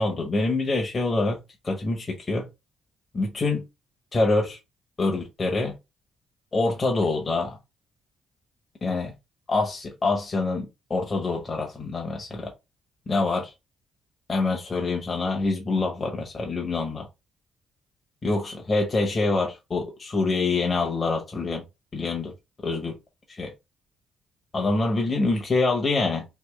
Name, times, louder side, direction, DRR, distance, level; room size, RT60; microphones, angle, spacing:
voice 1, 0.0-1.4 1.6-2.5 3.1-3.6 4.1-4.6 5.0-5.7 6.5-7.6 8.8-9.1 9.5-12.5 13.1-13.5 14.3-17.1 18.2-21.6 21.9-22.3 22.6-23.0 23.4-23.5 24.5-26.3, left 3 dB, 35° left, 1.1 m, -25 dB
3.4 x 2.8 x 3.4 m
cardioid pair, 90°, 0 cm